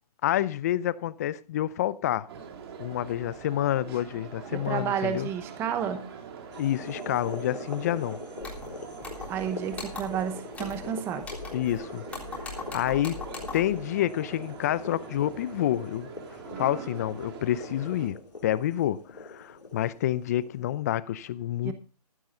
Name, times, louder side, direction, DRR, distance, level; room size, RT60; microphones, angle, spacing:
voice 1, 0.2-2.3 2.8-5.3 6.6-8.2 11.5-12.0 12.4-13.2 13.5-16.1 16.6-21.7, left 12 dB, 25° left, 0.5 m, -28 dB
sound 1, 2.3-18.1, right 6 dB, 40° right, 2.6 m, -43 dB
voice 2, 4.5-6.0 9.3-11.2 21.6-21.7, right 8 dB, 10° right, 0.8 m, -31 dB
sound 2, 6.5-20.7, left 3 dB, 85° left, 3.6 m, -43 dB
sound 3, 8.4-8.7 9.0-9.4 9.7-10.2 10.5-10.9 11.2-11.8 12.1-13.8, left 3 dB, 5° left, 3.5 m, -40 dB
15.0 x 11.5 x 3.8 m
hypercardioid pair, 150°, 21 cm